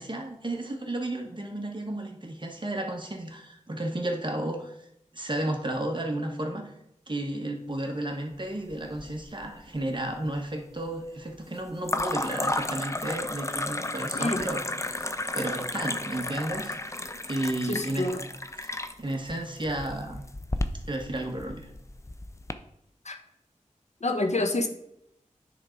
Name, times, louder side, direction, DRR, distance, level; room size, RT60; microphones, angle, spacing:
voice 1, 0.0-4.9 5.1-6.7 7.1-15.1 15.3-18.2 18.6-20.2 20.8-21.7, right 1 dB, 35° right, 2 dB, 1.6 m, -33 dB
sound 1, 8.7-9.5 9.8-10.4 11.8-22.5, left 2 dB, 20° left, 0.6 m, -33 dB
voice 2, 17.7-18.2 23.0-23.2 24.0-24.7, left 2 dB, 60° left, 6 dB, 1.1 m, -27 dB
9.7 x 3.8 x 4.6 m, 0.78 s
cardioid pair, 40°, 13 cm